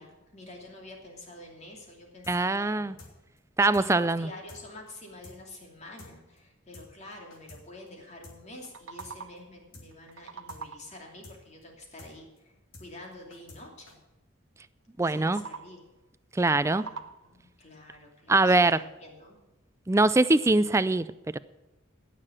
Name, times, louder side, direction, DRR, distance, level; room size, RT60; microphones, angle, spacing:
voice 1, 0.0-3.0 3.6-14.0 15.0-15.8 16.6-19.4, left 1 dB, 35° left, 1 dB, 2.8 m, -47 dB
sound 1, 2.2-2.4 2.6-2.7 3.0-3.1 3.4-3.5 3.7-4.1 4.5-4.6 4.9-5.0 5.2-5.4 5.6-5.7 6.0-6.1 6.4-6.5 6.7-6.9 7.1-7.6 7.9-8.0 8.2-8.4 8.6-8.7 9.0-9.1 9.4-9.5 9.7-9.9 10.1-10.2 10.5-10.6 10.9-11.0 11.2-11.4 11.6-11.7 12.0-12.1 12.4-12.5 12.7-12.9 13.1-13.6 13.9-14.0, left 2 dB, 85° left, 3.0 m, -48 dB
voice 2, 2.3-2.9 3.6-4.3 15.0-15.4 16.3-16.9 18.3-18.8 19.9-21.1 21.3-21.4, right 2 dB, 15° right, 14 dB, 0.3 m, -22 dB
sound 2, 8.4-9.6 9.9-11.1 15.0-15.9 16.4-17.5, right 5 dB, 80° right, 0.7 m, -44 dB
17.5 x 6.7 x 7.4 m, 1.0 s
head